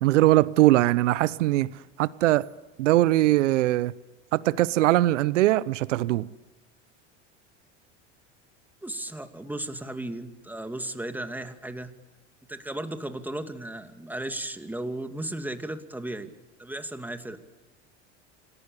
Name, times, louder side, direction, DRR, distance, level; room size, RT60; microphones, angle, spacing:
voice 1, 0.0-1.7 2.0-2.5 2.8-3.9 4.3-6.3, right 16 dB, 85° right, 0.8 m, -21 dB
voice 2, 8.8-11.9 12.5-16.3 16.6-17.4, right 1 dB, 5° right, 2.4 m, -35 dB
27.0 x 18.5 x 8.3 m
hypercardioid pair, 95°, 36 cm